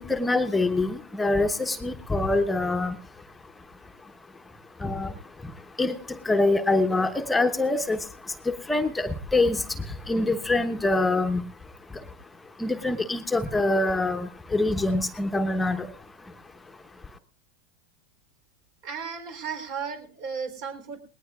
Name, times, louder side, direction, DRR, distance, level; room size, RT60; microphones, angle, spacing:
voice 1, 0.0-17.2, left 2 dB, 10° left, 7 dB, 1.0 m, -26 dB
voice 2, 18.8-21.0, right 6 dB, 55° right, 6 dB, 3.9 m, -34 dB
19.5 x 18.5 x 2.5 m, 0.36 s
hypercardioid pair, 100°, 0 cm